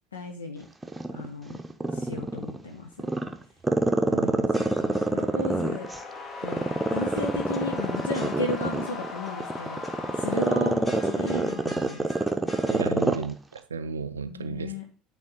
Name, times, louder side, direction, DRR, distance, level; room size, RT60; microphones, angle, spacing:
voice 1, 0.1-0.7 1.1-1.6 1.9-2.9 4.1-5.9 6.4-9.8 10.2-12.3 12.9-13.2 14.3-14.8, left 2 dB, 80° left, 0.6 m, -35 dB
Growling, 0.8-2.6 3.0-6.0 6.4-13.3 13.6-13.7, right 2 dB, 10° right, 0.7 m, -25 dB
sound 1, 4.3-5.6 6.0-6.6 6.9-8.9 9.2-9.9 10.3-12.9, equal, 20° left, 1.4 m, -45 dB
sound 2, 4.6-11.6, left 3 dB, 40° left, 1.0 m, -40 dB
voice 2, 12.7-14.7, right 5 dB, 80° right, 0.3 m, -34 dB
8.7 x 3.6 x 3.8 m
figure-of-eight pair, 65°, 0 cm